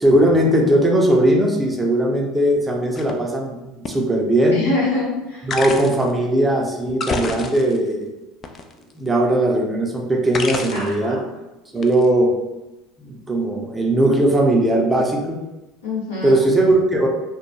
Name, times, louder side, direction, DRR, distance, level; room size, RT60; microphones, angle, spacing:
voice 1, 0.0-4.6 5.4-8.1 9.0-11.2 11.7-12.3 13.0-15.4 16.2-17.1, right 1 dB, 15° right, 0 dB, 0.5 m, -18 dB
sound 1, 2.9-3.1 3.9-4.0 5.5-6.1 6.9-7.9 8.4-9.1 10.3-11.0 11.8-12.1, left 4 dB, 35° left, 0.3 m, -28 dB
voice 2, 4.5-5.5 10.7-11.2 15.8-16.4, left 2 dB, 85° left, -7 dB, 1.1 m, -25 dB
2.3 x 2.1 x 3.0 m, 0.99 s
hypercardioid pair, 70°, 0 cm